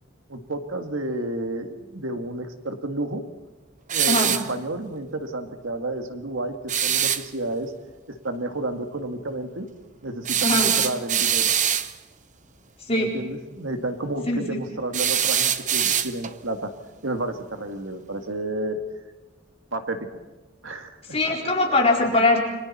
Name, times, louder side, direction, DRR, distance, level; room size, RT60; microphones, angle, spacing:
voice 1, 0.3-3.2 3.9-7.7 8.1-9.7 10.0-11.5 12.9-16.7 17.0-18.8 19.7-20.1 20.6-20.9, right 1 dB, 80° right, 6 dB, 1.9 m, -31 dB
sound 1, 3.9-4.5 6.7-7.2 10.3-11.9 14.9-16.4, right 9 dB, 40° right, 0.8 m, -23 dB
voice 2, 10.4-10.7 12.9-13.2 14.3-14.6 21.1-22.4, left 2 dB, 30° left, -2 dB, 4.4 m, -21 dB
29.5 x 23.0 x 4.3 m, 1.1 s
head